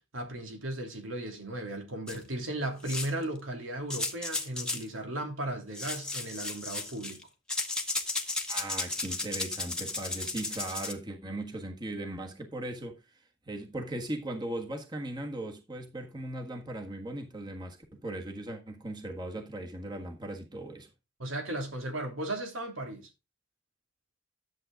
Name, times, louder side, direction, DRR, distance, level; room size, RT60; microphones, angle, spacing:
voice 1, 0.1-7.2 21.2-23.1, right 1 dB, 85° right, 2.9 m, -36 dB
sound 1, 2.1-2.2 2.8-3.2 3.9-4.9 5.7-7.2 7.5-10.9, left 2 dB, 5° left, 1.2 m, -34 dB
voice 2, 8.5-13.0 13.5-20.9, right 1 dB, 20° right, 1.5 m, -38 dB
11.0 x 7.7 x 3.8 m
head